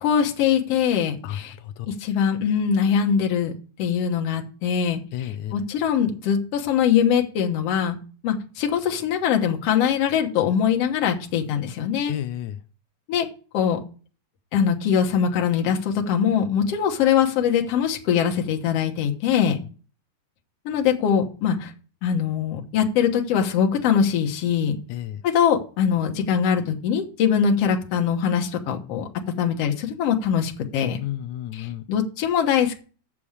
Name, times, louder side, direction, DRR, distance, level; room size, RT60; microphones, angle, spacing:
voice 1, 0.0-1.5 1.9-3.5 3.8-8.0 8.2-12.1 13.1-13.3 13.5-13.8 14.5-19.6 20.7-21.7 22.0-24.8 25.2-29.1 29.4-31.0 31.5-32.8, left 8 dB, 65° left, 3 dB, 2.1 m, -22 dB
voice 2, 1.2-1.9 5.1-5.5 12.1-12.6 24.9-25.2 31.0-31.8, left 12 dB, 85° left, 11 dB, 2.0 m, -32 dB
8.7 x 6.9 x 4.9 m, 0.38 s
omnidirectional pair, 3.3 m